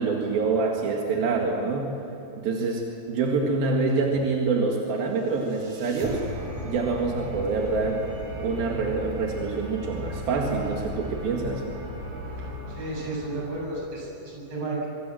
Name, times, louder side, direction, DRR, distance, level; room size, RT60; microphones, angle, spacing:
voice 1, 0.0-1.9 2.4-6.2 6.6-8.0 8.4-11.6, right 4 dB, 90° right, 0 dB, 3.9 m, -26 dB
sound 1, 5.0-14.1, equal, 70° right, 5.4 m, -37 dB
voice 2, 12.7-14.9, right 2 dB, 50° right, -3 dB, 8.6 m, -32 dB
25.5 x 23.5 x 7.7 m, 3.0 s
omnidirectional pair, 4.1 m